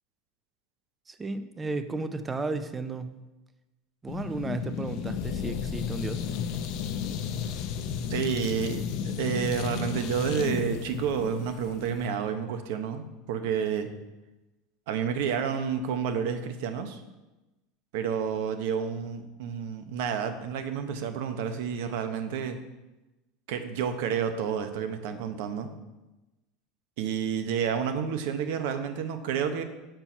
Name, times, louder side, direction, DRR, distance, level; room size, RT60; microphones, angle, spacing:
voice 1, 1.1-3.2 4.0-6.3, right 3 dB, 15° right, 10 dB, 0.4 m, -34 dB
sound 1, 4.1-12.1, left 7 dB, 55° left, 0.5 m, -33 dB
voice 2, 8.1-13.9 14.9-17.0 17.9-22.6 23.5-25.7 27.0-29.6, right 7 dB, 70° right, 8 dB, 0.7 m, -30 dB
5.8 x 4.5 x 5.4 m, 1.1 s
supercardioid pair, 145°, 0 cm